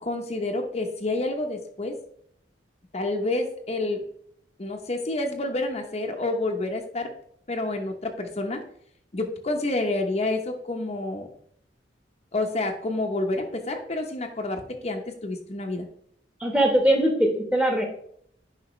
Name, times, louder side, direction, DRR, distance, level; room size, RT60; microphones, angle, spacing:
voice 1, 0.0-2.0 2.9-4.0 4.6-7.1 7.5-8.6 9.1-11.3 12.3-15.9, left 2 dB, 35° left, 3 dB, 0.8 m, -28 dB
voice 2, 16.4-17.8, right 1 dB, 5° right, 3 dB, 1.2 m, -21 dB
9.8 x 5.4 x 3.2 m, 0.66 s
head